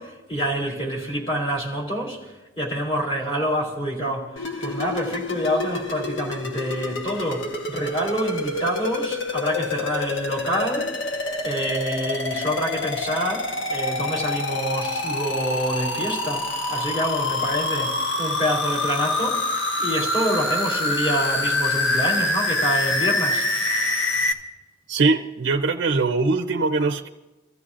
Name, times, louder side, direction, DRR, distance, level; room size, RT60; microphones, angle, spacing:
voice 1, 0.0-19.4 19.8-23.5, equal, 30° left, 3.5 m, -27 dB
sound 1, 4.4-24.3, left 2 dB, 75° left, 1.2 m, -26 dB
voice 2, 24.9-27.1, right 3 dB, 65° right, 0.6 m, -22 dB
27.0 x 14.0 x 2.5 m
head